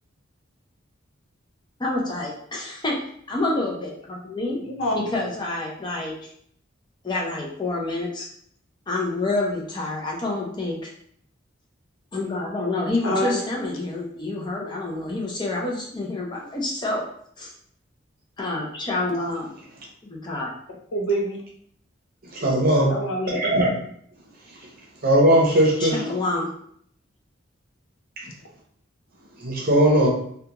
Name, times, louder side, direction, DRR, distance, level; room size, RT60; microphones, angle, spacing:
voice 1, 1.8-3.0 3.3-4.6 4.9-6.1 7.0-8.3 8.9-10.9 12.1-17.0 17.4-17.5 18.4-19.5 20.1-20.5 25.8-26.5, left 2 dB, 25° left, -2 dB, 0.5 m, -28 dB
voice 2, 4.6-5.1 13.0-13.4 20.9-21.4 22.5-23.5, equal, 85° left, 1 dB, 0.6 m, -26 dB
voice 3, 22.3-22.9 23.3-23.7 25.0-26.0 29.4-30.1, right 1 dB, 50° right, -2 dB, 0.7 m, -18 dB
2.4 x 2.2 x 2.9 m, 0.64 s
head